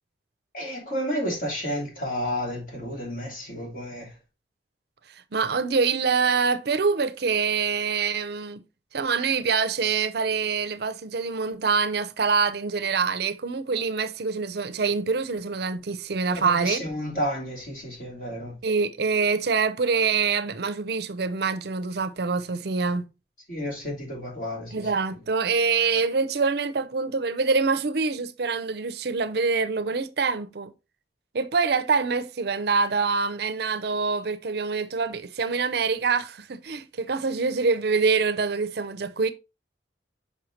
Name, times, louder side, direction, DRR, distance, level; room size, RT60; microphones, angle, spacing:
voice 1, 0.5-4.1 16.3-18.5 23.5-24.9, equal, 50° left, 2.9 m, -31 dB
voice 2, 5.3-8.6 8.9-16.8 18.6-23.1 24.7-30.7 31.3-39.3, right 5 dB, 60° right, 0.6 m, -25 dB
6.4 x 5.4 x 2.9 m
head